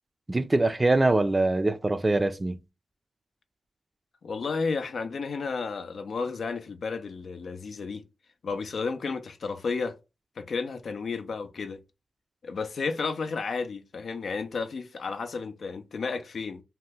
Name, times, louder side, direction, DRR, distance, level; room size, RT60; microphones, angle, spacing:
voice 1, 0.3-2.6, right 2 dB, 30° right, 0.4 m, -23 dB
voice 2, 4.2-8.0 8.4-10.0 10.4-11.8 12.4-16.6, left 4 dB, 75° left, 0.4 m, -32 dB
2.8 x 2.2 x 3.3 m
cardioid pair, 45°, 0 cm